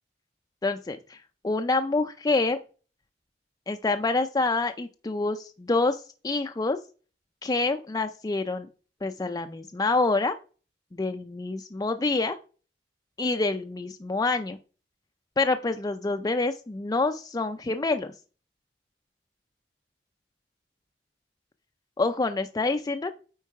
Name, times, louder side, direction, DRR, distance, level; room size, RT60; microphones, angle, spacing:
voice 1, 0.6-1.2 1.4-2.6 3.7-6.8 7.4-8.7 9.0-10.4 10.9-12.4 13.2-14.6 15.4-18.1 22.0-23.1, left 3 dB, 20° left, 7 dB, 0.4 m, -27 dB
9.1 x 3.9 x 4.6 m, 0.36 s
head